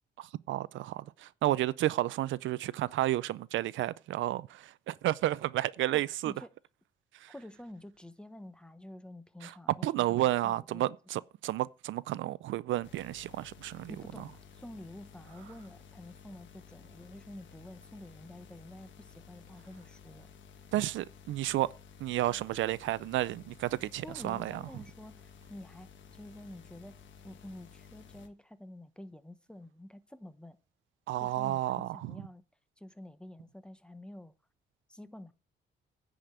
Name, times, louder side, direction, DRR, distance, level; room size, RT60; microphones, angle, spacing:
voice 1, 0.2-6.3 7.1-7.3 9.4-9.5 9.8-13.9 20.7-21.7 22.0-24.6 31.1-32.1, right 14 dB, 75° right, 0.4 m, -32 dB
voice 2, 5.9-6.5 7.3-11.2 13.9-20.3 24.0-27.0 27.2-30.6 31.2-32.4 32.8-34.3 34.9-35.3, left 1 dB, 5° left, 0.9 m, -49 dB
sound 1, 12.8-28.3, left 6 dB, 70° left, 1.4 m, -54 dB
10.0 x 5.1 x 7.9 m
cardioid pair, 90°, 20 cm